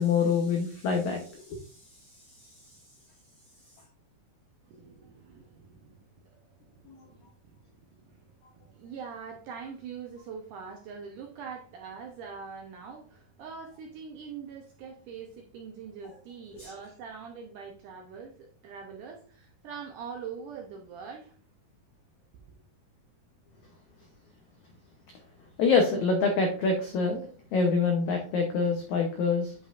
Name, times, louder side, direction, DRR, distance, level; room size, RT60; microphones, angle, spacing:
voice 1, 0.0-1.6 6.9-7.0 16.5-16.7 25.6-27.2 27.5-29.5, left 4 dB, 80° left, 1.7 m, -26 dB
voice 2, 4.7-6.1 6.8-7.3 8.1-8.2 8.6-21.4 22.3-22.4, right 6 dB, 75° right, 1.9 m, -43 dB
9.2 x 5.2 x 2.5 m
omnidirectional pair, 4.7 m